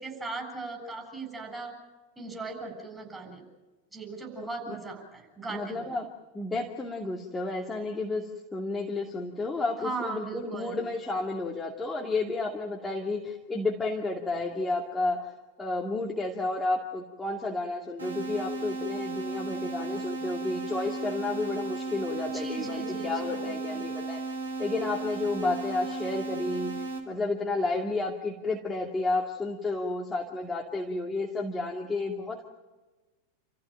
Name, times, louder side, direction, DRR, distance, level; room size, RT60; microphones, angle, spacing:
voice 1, 0.0-1.7 2.2-3.4 3.9-5.9 9.8-10.8 22.3-23.9, right 3 dB, 10° right, 3 dB, 7.4 m, -38 dB
voice 2, 5.5-6.1 6.3-15.3 15.6-24.2 24.6-32.5, left 2 dB, 10° left, 0 dB, 2.4 m, -31 dB
sound 1, 18.0-27.0, right 3 dB, 70° right, 3.8 m, -35 dB
29.0 x 15.0 x 9.0 m, 1.2 s
figure-of-eight pair, 90°, 0 cm